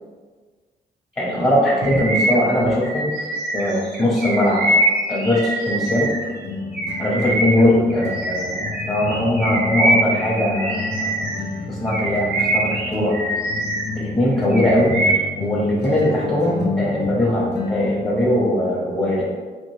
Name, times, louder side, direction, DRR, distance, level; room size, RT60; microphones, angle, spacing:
voice 1, 1.2-3.1 3.5-4.7 5.1-6.1 7.0-11.4 11.7-13.2 13.9-14.9 15.4-19.3, left 1 dB, 20° left, -5 dB, 0.8 m, -20 dB
Bird vocalization bird call bird song, 1.8-6.3 6.7-11.5 11.9-14.0 14.3-15.4, right 1 dB, 85° right, 1.1 m, -24 dB
sound 1, 4.8-4.9 5.7-18.4, left 3 dB, 75° left, 0.5 m, -30 dB
3.0 x 2.5 x 3.1 m, 1.5 s
cardioid pair, 75°, 17 cm